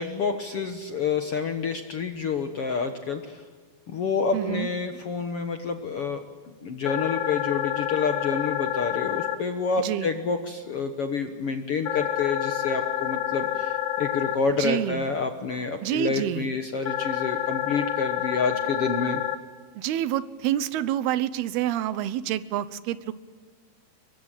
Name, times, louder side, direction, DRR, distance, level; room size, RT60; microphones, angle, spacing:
voice 1, 0.0-3.4 3.9-6.2 6.6-19.2, left 5 dB, 70° left, 7 dB, 1.4 m, -28 dB
voice 2, 4.3-4.7 9.8-10.1 14.6-15.0 15.8-16.5 19.8-23.1, right 12 dB, 80° right, 16 dB, 2.9 m, -27 dB
sound 1, 6.9-9.4 11.9-14.4 16.9-19.4, left 11 dB, 90° left, 3.4 m, -28 dB
23.5 x 23.0 x 9.0 m, 1.5 s
omnidirectional pair, 4.5 m